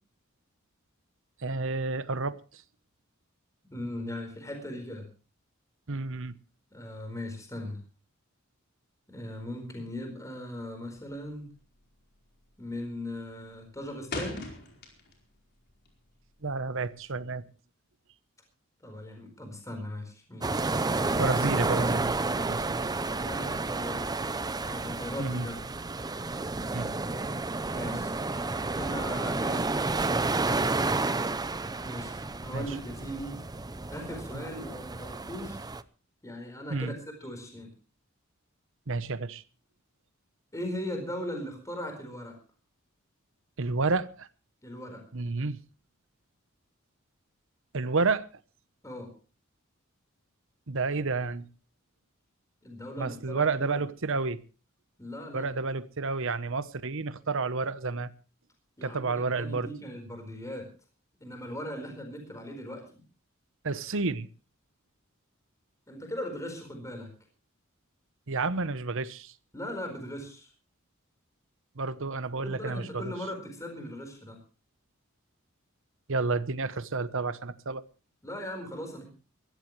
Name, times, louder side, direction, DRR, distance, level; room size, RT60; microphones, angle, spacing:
voice 1, 1.4-2.6 5.9-6.4 16.4-17.5 21.1-22.2 22.4-22.8 23.3-23.5 25.2-25.5 26.7-26.9 32.5-32.8 34.3-34.4 36.7-36.9 38.9-39.4 43.6-44.3 45.1-45.6 47.7-48.3 50.7-51.5 53.0-54.4 55.3-58.1 58.8-59.7 63.6-64.3 68.3-69.3 71.8-73.1 76.1-77.8, right 3 dB, 65° right, 1.0 m, -30 dB
voice 2, 3.7-5.1 6.7-7.8 9.1-11.5 12.6-14.5 18.8-20.6 23.2-24.0 24.7-25.6 27.7-28.1 28.7-30.3 31.8-33.4 33.9-35.6 36.2-36.9 37.2-37.7 40.5-42.4 44.6-45.0 48.8-49.1 52.6-53.8 55.0-55.5 58.8-60.7 61.2-63.0 65.9-67.1 69.5-70.5 72.4-74.4 78.2-79.1, left 1 dB, 15° left, 4.5 m, -39 dB
sound 1, 10.9-11.3 11.6-11.9 12.3-12.7 13.0-15.4 15.7-17.1, left 2 dB, 50° left, 4.6 m, -40 dB
sound 2, 20.4-35.8, right 3 dB, 20° right, 0.6 m, -31 dB
22.5 x 14.5 x 3.2 m
head